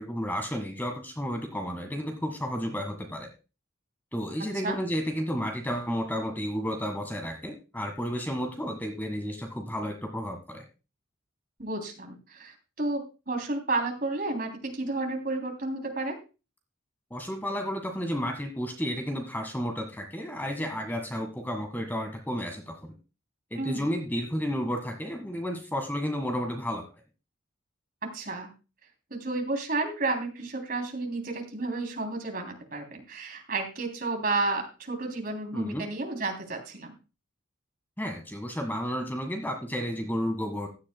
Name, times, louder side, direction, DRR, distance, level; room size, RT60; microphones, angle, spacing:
voice 1, 0.0-3.3 4.1-10.6 17.1-22.8 23.5-26.8 35.5-35.8 38.0-40.7, equal, 10° left, 4 dB, 1.5 m, -32 dB
voice 2, 11.6-16.2 23.5-23.9 28.1-28.5 29.1-36.9, right 2 dB, 45° right, 3 dB, 3.1 m, -31 dB
16.0 x 11.0 x 2.2 m, 0.31 s
head